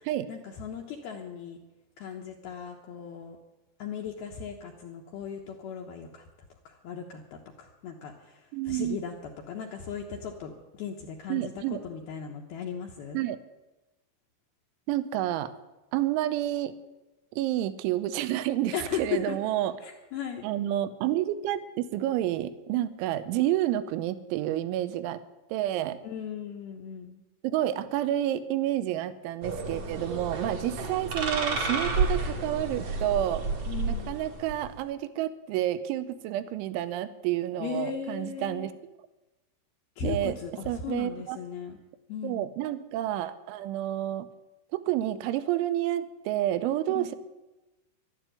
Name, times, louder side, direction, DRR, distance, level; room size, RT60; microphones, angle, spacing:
voice 1, 0.3-1.6 2.0-3.4 3.8-6.2 6.7-9.1 9.5-11.5 11.8-13.2 18.7-19.4 19.8-20.4 26.0-27.2 30.7-30.8 33.7-34.2 37.6-38.7 40.0-41.8 42.1-42.5 47.0-47.1, left 7 dB, 70° left, 0 dB, 2.5 m, -37 dB
voice 2, 8.5-9.0 11.3-11.8 13.1-13.4 14.9-15.5 15.9-16.8 17.3-19.8 20.4-25.2 25.5-26.0 27.4-33.4 33.9-38.7 40.0-40.4 40.7-41.4 42.2-44.3 44.7-47.2, right 13 dB, 80° right, 13 dB, 3.1 m, -29 dB
sound 1, 29.4-34.8, right 3 dB, 50° right, 2.0 m, -31 dB
12.0 x 12.0 x 9.1 m, 1.0 s
omnidirectional pair, 5.7 m